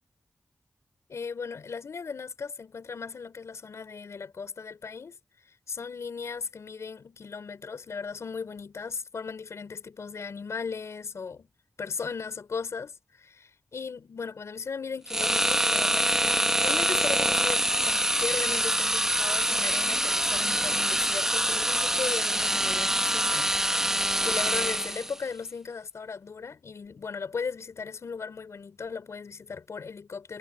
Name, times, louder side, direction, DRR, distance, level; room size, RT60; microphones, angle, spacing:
voice 1, 1.1-5.2 5.7-11.5 11.8-30.4, left 5 dB, 80° left, 5.4 m, -37 dB
sound 1, 15.1-25.2, right 1 dB, 10° right, 1.4 m, -25 dB
wide cardioid pair, 65°, 5 cm